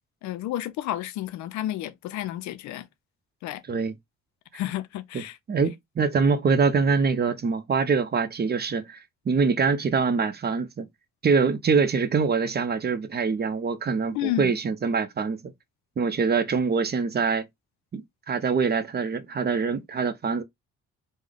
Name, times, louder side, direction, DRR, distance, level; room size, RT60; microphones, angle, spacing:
voice 1, 0.2-2.9 3.4-3.6 4.5-5.4 14.1-14.6, left 14 dB, 70° left, 0.5 m, -31 dB
voice 2, 5.5-10.9 11.2-15.5 16.0-17.5 17.9-20.4, right 5 dB, 35° right, 0.7 m, -24 dB
3.3 x 2.1 x 3.6 m
supercardioid pair, 55°, 30 cm